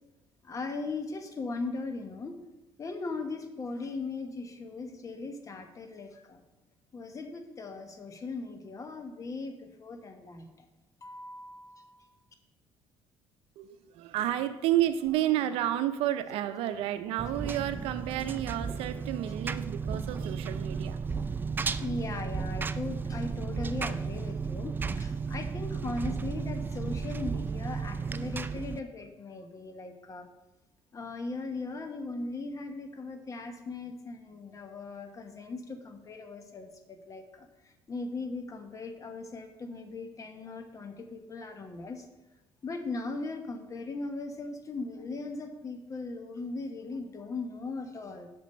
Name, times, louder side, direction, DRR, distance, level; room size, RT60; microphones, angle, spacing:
voice 1, 0.4-2.4 2.8-6.4 6.9-10.7 11.0-12.0 21.2-21.3 21.7-30.3 30.9-37.5 37.9-42.1 42.6-48.3, left 3 dB, 35° left, 6 dB, 1.1 m, -38 dB
voice 2, 13.6-21.0, right 12 dB, 80° right, 11 dB, 0.6 m, -30 dB
Engine, 17.2-28.8, right 5 dB, 20° right, 0.3 m, -34 dB
6.1 x 5.1 x 6.7 m, 1.0 s
cardioid pair, 95°, 10 cm